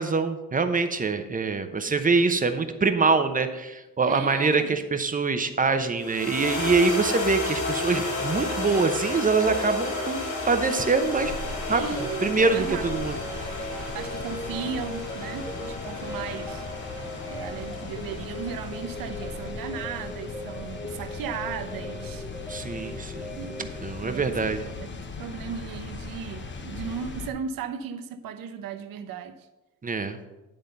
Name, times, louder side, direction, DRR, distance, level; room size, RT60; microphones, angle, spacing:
voice 1, 0.0-11.3 11.7-11.8 12.2-13.5 22.5-23.3 23.8-24.6 29.8-30.2, right 4 dB, 25° right, 0.8 m, -24 dB
voice 2, 4.1-4.8 11.7-12.9 13.9-16.7 17.3-22.3 23.3-23.7 24.0-24.3 24.6-29.5, right 7 dB, 85° right, 0.8 m, -36 dB
sound 1, 6.0-20.4, left 3 dB, 60° left, 2.4 m, -33 dB
sound 2, 7.8-24.4, left 1 dB, 5° left, 0.7 m, -40 dB
sound 3, 10.5-27.3, left 4 dB, 35° left, 0.9 m, -39 dB
10.5 x 3.8 x 6.7 m
cardioid pair, 100°, 33 cm